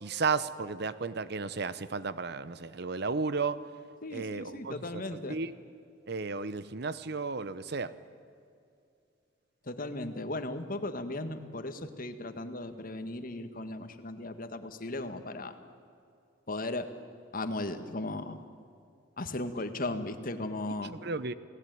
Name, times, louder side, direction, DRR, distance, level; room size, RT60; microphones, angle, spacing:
voice 1, 0.0-3.6 4.1-5.5 6.1-7.9 20.9-21.3, right 4 dB, 60° right, 14 dB, 0.9 m, -33 dB
voice 2, 4.0-5.4 9.7-15.5 16.5-16.9 17.3-18.4 19.2-21.0, left 2 dB, 50° left, 9 dB, 1.7 m, -36 dB
28.5 x 18.5 x 9.3 m, 2.4 s
head